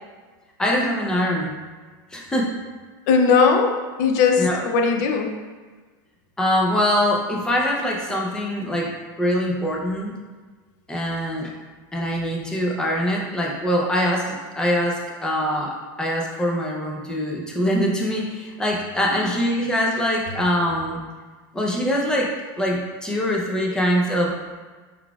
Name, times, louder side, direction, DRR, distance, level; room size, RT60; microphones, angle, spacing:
voice 1, 0.6-1.5 2.1-2.5 4.4-4.6 6.4-8.9 9.2-10.1 10.9-11.5 11.9-21.0 21.5-24.3, equal, 5° left, -2 dB, 0.5 m, -23 dB
voice 2, 3.1-5.3 19.1-19.3, left 5 dB, 55° left, 4 dB, 0.5 m, -19 dB
4.6 x 3.9 x 2.3 m, 1.4 s
supercardioid pair, 155°, 11 cm